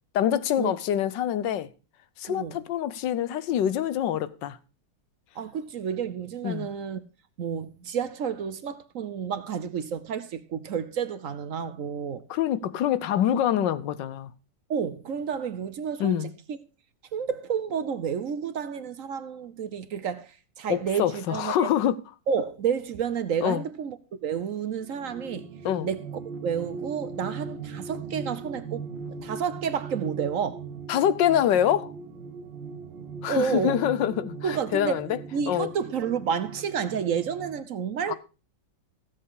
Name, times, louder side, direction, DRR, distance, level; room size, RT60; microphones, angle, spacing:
voice 1, 0.1-1.7 2.2-4.6 6.4-6.7 12.3-14.3 16.0-16.3 20.7-22.0 23.4-23.6 25.6-25.9 30.9-31.9 33.2-35.1 35.5-35.7 38.1-38.2, left 10 dB, 80° left, 1.4 m, -25 dB
voice 2, 2.3-2.6 5.3-7.0 7.4-12.2 14.7-16.6 17.1-21.7 22.3-25.5 25.8-26.1 26.4-28.9 29.2-30.6 33.3-33.8 34.4-35.0 35.3-38.1, right 7 dB, 55° right, 1.0 m, -30 dB
sound 1, 24.8-37.6, right 5 dB, 85° right, 1.7 m, -39 dB
14.5 x 7.7 x 4.8 m
omnidirectional pair, 2.0 m